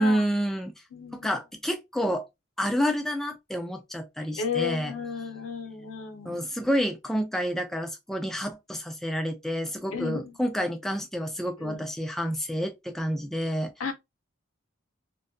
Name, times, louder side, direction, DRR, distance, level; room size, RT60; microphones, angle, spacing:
voice 1, 0.0-0.7 1.1-2.2 2.6-4.9 6.3-13.7, equal, ahead, 0.3 m, -29 dB
voice 2, 0.9-1.3 4.4-6.4 9.9-10.3 11.6-11.8 13.8-13.9, left 6 dB, 80° left, 0.6 m, -33 dB
2.6 x 2.2 x 2.5 m
head